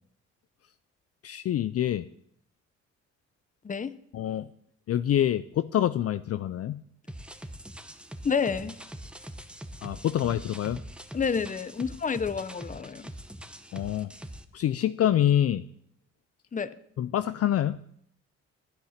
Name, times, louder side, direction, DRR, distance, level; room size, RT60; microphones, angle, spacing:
voice 1, 1.2-2.1 4.1-4.5 4.9-6.8 9.8-10.8 13.7-14.1 14.5-15.6 17.0-17.8, left 11 dB, 55° left, 14 dB, 0.5 m, -26 dB
sound 1, 7.1-14.4, equal, 5° right, 1.0 m, -43 dB
voice 2, 8.2-8.8 11.1-13.1 16.5-16.7, left 6 dB, 25° left, 15 dB, 0.8 m, -29 dB
11.5 x 9.9 x 6.5 m, 0.70 s
cardioid pair, 90°, 30 cm